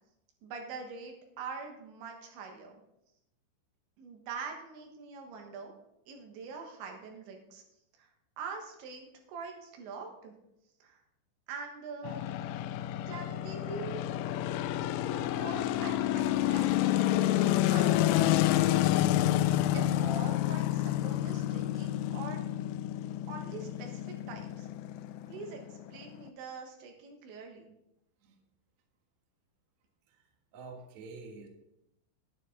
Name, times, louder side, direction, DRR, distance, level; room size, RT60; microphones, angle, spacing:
voice 1, 0.4-2.8 4.0-5.7 6.1-7.6 8.0-8.1 8.4-10.3 10.8-11.0 11.5-12.2 13.1-14.0 14.9-16.9 17.7-19.2 19.7-22.4 23.3-24.7 25.3-27.7, right 4 dB, 85° right, 2 dB, 3.8 m, -44 dB
sound 1, 12.0-26.3, left 13 dB, 85° left, 2.7 m, -29 dB
voice 2, 30.5-31.5, right 3 dB, 60° right, 2 dB, 2.1 m, -47 dB
11.0 x 9.7 x 3.8 m, 0.83 s
omnidirectional pair, 5.2 m